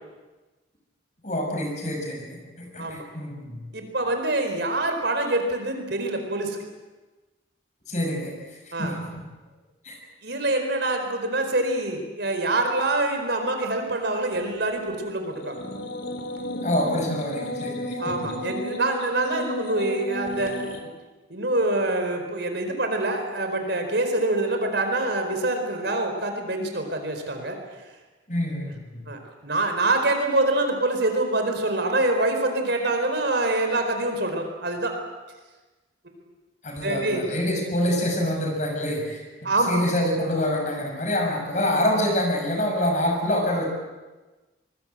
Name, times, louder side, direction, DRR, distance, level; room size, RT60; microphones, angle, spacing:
voice 1, 1.2-3.6 7.9-8.3 8.8-9.1 9.8-9.9 16.6-18.3 28.3-29.0 36.6-43.7, left 1 dB, 40° left, 2 dB, 6.5 m, -26 dB
voice 2, 3.7-6.6 8.7-9.0 10.2-15.5 18.0-20.7 21.3-27.6 29.1-34.9 36.8-37.2 39.4-39.8, right 2 dB, 60° right, 5 dB, 4.5 m, -25 dB
sound 1, 15.3-20.8, left 1 dB, 75° left, 3.6 m, -33 dB
25.0 x 21.5 x 7.8 m, 1.2 s
head